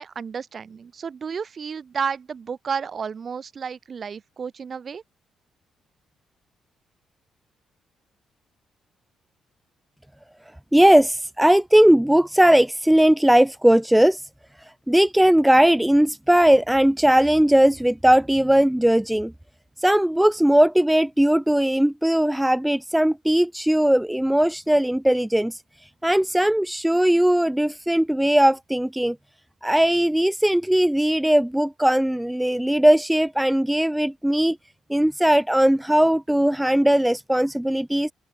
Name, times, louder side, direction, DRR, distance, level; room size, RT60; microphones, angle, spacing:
voice 1, 0.0-5.0, right 6 dB, 45° right, 3.1 m, -31 dB
voice 2, 10.7-14.2 14.9-19.3 19.8-25.6 26.0-29.2 29.6-34.6 34.9-38.1, right 1 dB, 5° right, 0.3 m, -18 dB
open air
cardioid pair, 90°, 0 cm